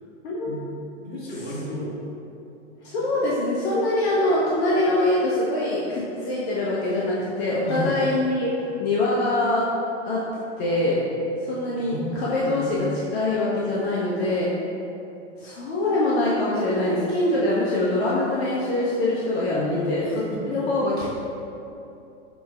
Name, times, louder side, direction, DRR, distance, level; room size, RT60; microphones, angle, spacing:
voice 1, 0.2-0.6 2.8-8.5 8.8-9.7 10.0-10.2 10.6-11.0 11.5-12.9 13.1-14.5 15.4-19.6 19.9-20.1 20.5-21.1, left 1 dB, 60° left, -6 dB, 0.8 m, -23 dB
voice 2, 1.0-1.9 3.0-3.1 7.6-7.9 11.8-12.8 19.5-20.4, left 2 dB, 30° left, -8 dB, 1.5 m, -31 dB
5.5 x 3.0 x 2.4 m, 2.8 s
hypercardioid pair, 125°, 36 cm